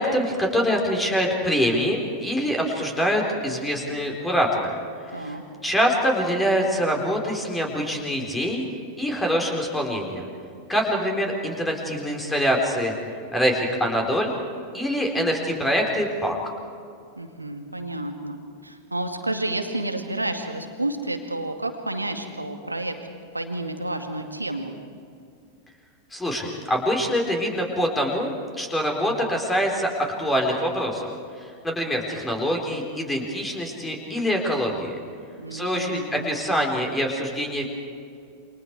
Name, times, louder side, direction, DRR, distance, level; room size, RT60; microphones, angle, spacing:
voice 1, 0.0-4.8 5.0-8.6 9.0-10.3 10.7-12.9 13.3-14.3 14.7-16.4 26.1-29.9 30.2-31.1 31.4-35.0 35.5-37.7, equal, 10° left, 1 dB, 4.6 m, -24 dB
voice 2, 5.1-5.4 17.2-23.0 23.3-24.8 35.4-36.3, right 2 dB, 85° right, 5 dB, 2.1 m, -30 dB
28.5 x 26.0 x 4.9 m, 2.4 s
figure-of-eight pair, 90°, 0 cm